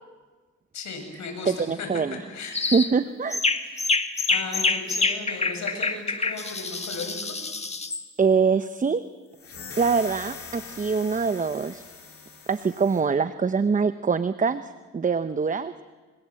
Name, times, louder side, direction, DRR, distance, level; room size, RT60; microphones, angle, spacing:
voice 1, 0.7-1.9 2.3-2.8 3.6-7.4, left 4 dB, 70° left, 4 dB, 7.6 m, -36 dB
voice 2, 1.5-2.2 2.7-3.4 8.2-9.0 9.8-11.8 12.5-15.7, right 5 dB, 25° right, 12 dB, 0.9 m, -24 dB
sound 1, 2.5-2.9 3.3-8.0, left 3 dB, 20° left, 2.0 m, -26 dB
sound 2, 9.3-13.0, left 5 dB, 50° left, 7.2 m, -42 dB
29.5 x 25.5 x 7.7 m, 1.3 s
cardioid pair, 90°, 30 cm